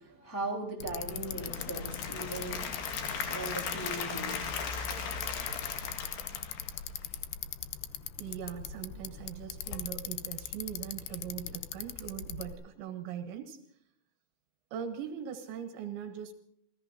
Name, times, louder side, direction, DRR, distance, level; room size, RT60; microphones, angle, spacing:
voice 1, 0.0-2.6 3.3-4.6 5.1-5.6, right 2 dB, 5° left, -1 dB, 2.6 m, -39 dB
Bicycle, 0.8-12.5, left 8 dB, 80° left, 2.3 m, -40 dB
Applause / Crowd, 1.1-7.2, left 5 dB, 55° left, 3.0 m, -38 dB
voice 2, 8.2-13.6 14.7-16.3, right 8 dB, 75° right, 6 dB, 3.2 m, -40 dB
28.5 x 17.0 x 2.8 m, 0.72 s
omnidirectional pair, 5.6 m